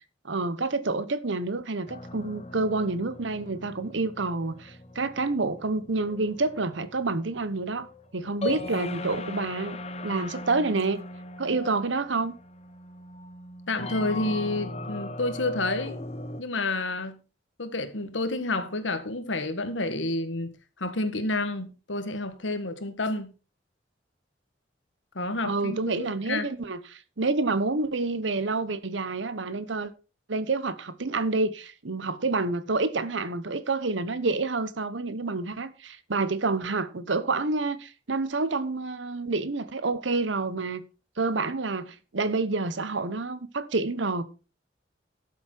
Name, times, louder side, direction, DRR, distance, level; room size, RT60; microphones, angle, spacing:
voice 1, 0.2-9.8 10.0-11.0 11.4-12.4 25.4-29.9 30.3-40.8 41.2-44.2, right 3 dB, 80° right, 1.0 m, -28 dB
sound 1, 1.9-16.4, left 2 dB, 35° left, 1.0 m, -39 dB
voice 2, 13.7-16.0 16.4-17.2 17.6-23.3 25.1-26.5, left 2 dB, 85° left, 1.6 m, -30 dB
12.0 x 7.2 x 4.5 m
head